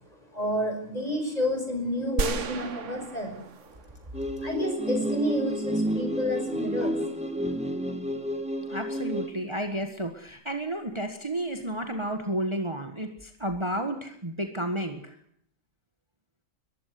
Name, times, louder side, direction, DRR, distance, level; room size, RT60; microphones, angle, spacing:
voice 1, 0.3-3.7 4.4-7.0, left 1 dB, 30° left, 4 dB, 6.1 m, -30 dB
sound 1, 2.2-4.5, right 5 dB, 65° right, 1.5 m, -33 dB
sound 2, 4.1-9.3, equal, 5° right, 1.9 m, -30 dB
voice 2, 8.7-15.2, right 1 dB, 20° right, 6 dB, 1.8 m, -32 dB
21.5 x 15.0 x 9.5 m, 0.67 s
omnidirectional pair, 1.4 m